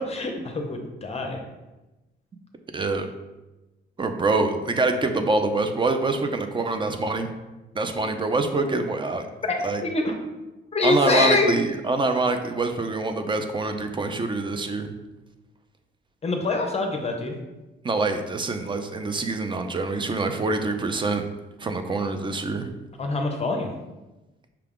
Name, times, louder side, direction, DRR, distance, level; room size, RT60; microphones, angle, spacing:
voice 1, 0.0-1.4 9.4-10.1 10.7-11.5 16.2-17.3 23.0-23.7, left 3 dB, 30° left, 3 dB, 0.6 m, -25 dB
voice 2, 2.7-3.1 4.0-7.3 7.7-9.3 9.6-9.8 10.8-14.9 17.8-21.3 21.6-22.7, right 3 dB, 25° right, 7 dB, 0.5 m, -25 dB
5.8 x 2.3 x 3.5 m, 1.1 s
cardioid pair, 90°, 20 cm